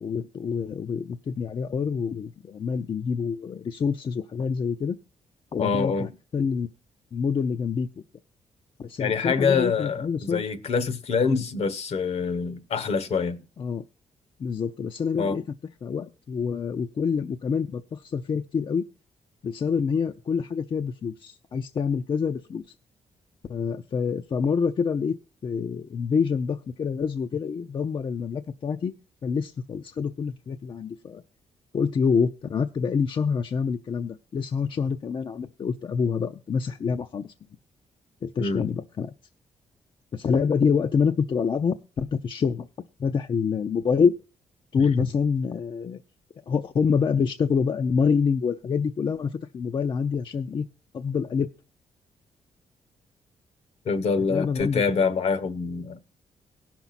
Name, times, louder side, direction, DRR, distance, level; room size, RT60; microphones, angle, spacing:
voice 1, 0.0-5.0 5.5-6.7 7.1-7.9 8.8-10.4 11.3-11.4 13.6-13.8 14.4-15.4 15.8-18.8 19.4-22.6 23.5-25.2 25.4-28.9 29.2-31.2 31.7-37.3 38.2-39.1 40.1-42.7 43.0-44.1 44.7-46.0 46.5-50.7 50.9-51.5 54.3-54.8, left 6 dB, 45° left, 0.5 m, -26 dB
voice 2, 5.6-6.1 9.0-13.4 15.2-15.4 38.4-38.7 45.0-45.1 53.8-56.0, left 5 dB, 65° left, 1.0 m, -25 dB
17.0 x 6.0 x 4.1 m
cardioid pair, 85°, 11 cm